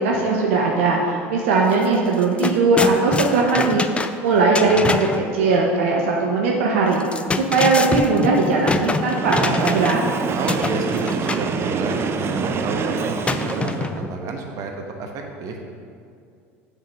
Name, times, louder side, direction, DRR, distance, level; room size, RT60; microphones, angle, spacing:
voice 1, 0.0-3.8 4.2-7.0 7.4-10.0, right 3 dB, 80° right, -1 dB, 0.7 m, -19 dB
sound 1, 1.7-1.9 2.1-5.2 6.9-10.1 10.5-11.5 13.2-14.2, left 3 dB, 15° left, 0.4 m, -25 dB
Train, 9.0-14.0, right 5 dB, 35° right, 0.5 m, -26 dB
voice 2, 10.3-15.6, right 3 dB, 55° right, 2 dB, 1.0 m, -30 dB
6.6 x 3.8 x 6.2 m, 2.3 s
hypercardioid pair, 80°, 7 cm